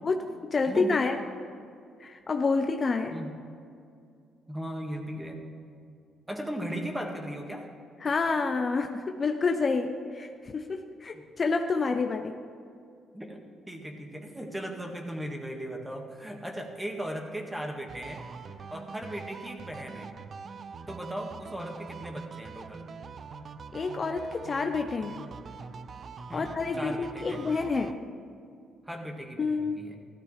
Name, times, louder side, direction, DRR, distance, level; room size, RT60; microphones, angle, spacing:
voice 1, 0.0-1.2 2.0-3.2 8.0-12.4 23.7-25.2 26.3-28.0 29.4-29.8, left 4 dB, 35° left, 5 dB, 0.7 m, -28 dB
voice 2, 0.7-1.0 3.1-3.3 4.5-5.4 6.3-7.7 11.1-11.2 13.1-13.4 13.7-18.2 18.7-20.1 20.9-22.9 26.3-27.4 28.9-30.0, equal, 10° right, 2 dB, 1.8 m, -37 dB
sound 1, 17.9-27.9, right 5 dB, 45° right, 0.5 m, -44 dB
14.5 x 13.0 x 3.3 m, 2.4 s
cardioid pair, 95°, 0 cm